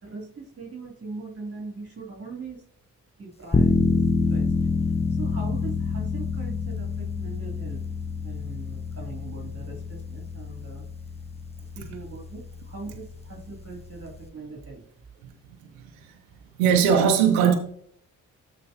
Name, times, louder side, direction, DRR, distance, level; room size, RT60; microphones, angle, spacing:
voice 1, 0.0-2.7 3.2-4.5 4.8-7.8 8.2-10.8 11.7-14.8, right 3 dB, 35° right, 2.8 m, -40 dB
sound 1, 3.5-14.3, left 4 dB, 15° left, 0.9 m, -28 dB
voice 2, 15.8-16.2 16.6-17.5, right 7 dB, 85° right, 0.8 m, -20 dB
13.0 x 4.6 x 2.7 m
hypercardioid pair, 40°, 42 cm